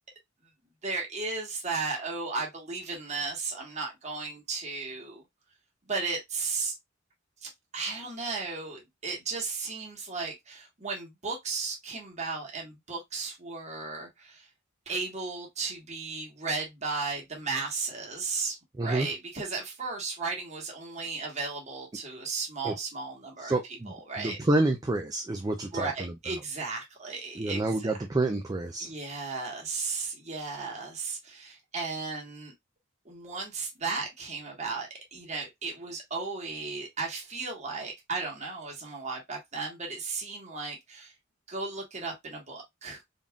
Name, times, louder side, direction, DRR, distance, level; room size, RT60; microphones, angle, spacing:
voice 1, 0.8-5.2 5.8-6.7 7.4-14.5 14.9-24.4 25.7-28.0 28.8-32.5 33.0-41.1 41.5-43.0, right 4 dB, 35° right, 1.3 m, -35 dB
voice 2, 23.4-26.1 27.4-28.9, right 2 dB, 20° right, 0.4 m, -28 dB
4.0 x 3.6 x 2.3 m
head